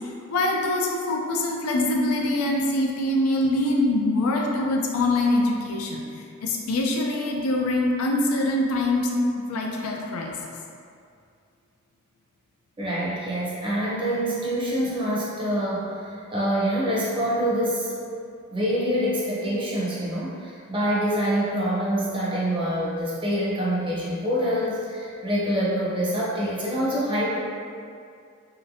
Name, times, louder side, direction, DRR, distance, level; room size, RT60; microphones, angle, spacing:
voice 1, 0.3-6.0 6.4-10.3, left 2 dB, 80° left, 0 dB, 0.4 m, -24 dB
voice 2, 12.8-18.0 18.5-27.4, equal, 25° right, -7 dB, 0.7 m, -26 dB
3.1 x 2.9 x 2.6 m, 2.3 s
head